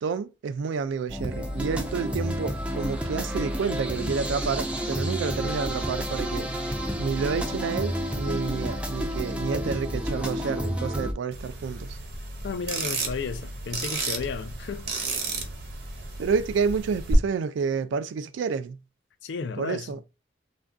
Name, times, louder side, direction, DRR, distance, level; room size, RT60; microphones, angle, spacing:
voice 1, 0.0-6.5 7.0-12.0 16.2-18.8 19.6-20.0, right 5 dB, 80° right, 0.3 m, -29 dB
sound 1, 1.1-11.1, equal, 5° right, 0.4 m, -30 dB
sound 2, 11.3-17.1, right 3 dB, 55° right, 0.7 m, -33 dB
voice 2, 12.4-14.9 19.2-19.9, left 5 dB, 65° left, 0.4 m, -33 dB
2.5 x 2.2 x 3.5 m
head